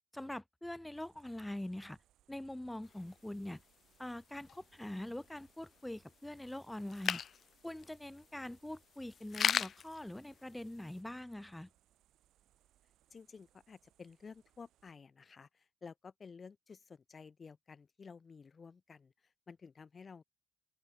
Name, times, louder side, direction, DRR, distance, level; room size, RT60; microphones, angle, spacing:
voice 1, 0.1-2.0 2.3-3.6 4.0-7.2 7.6-11.7, left 1 dB, 5° left, 1.4 m, -44 dB
sound 1, 0.9-14.9, right 13 dB, 80° right, 4.1 m, -73 dB
sound 2, 2.8-11.0, left 8 dB, 55° left, 0.5 m, -41 dB
voice 2, 13.1-20.2, left 5 dB, 40° left, 2.1 m, -53 dB
open air
cardioid pair, 90°, 0 cm